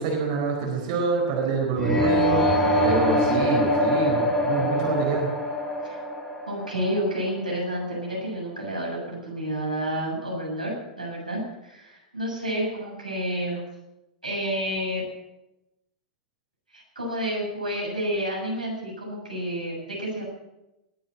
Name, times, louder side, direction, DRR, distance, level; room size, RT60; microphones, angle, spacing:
voice 1, 0.0-5.3, right 4 dB, 50° right, 0 dB, 4.4 m, -26 dB
sound 1, 1.8-7.7, equal, 15° left, 4.0 m, -24 dB
voice 2, 6.5-13.6 14.2-15.0 16.7-20.2, equal, 90° right, -2 dB, 7.3 m, -30 dB
20.0 x 8.8 x 7.6 m, 0.94 s
figure-of-eight pair, 100°, 4 cm